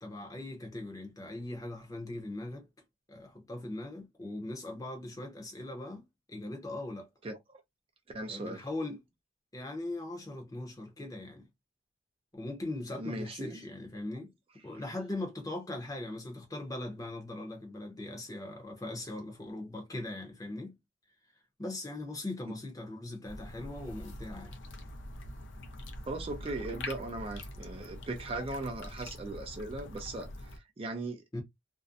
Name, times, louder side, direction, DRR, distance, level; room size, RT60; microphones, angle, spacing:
voice 1, 0.0-2.7 3.1-6.0 6.3-7.1 8.3-9.0 9.5-11.4 12.3-14.3 14.6-20.7 21.6-24.6 31.3-31.4, left 2 dB, 20° left, 0.7 m, -40 dB
voice 2, 8.1-8.6 13.0-13.6 22.5-22.6 26.1-31.2, right 2 dB, 30° right, 0.4 m, -38 dB
sound 1, 23.2-30.6, left 1 dB, 65° left, 0.6 m, -44 dB
2.6 x 2.0 x 2.4 m
head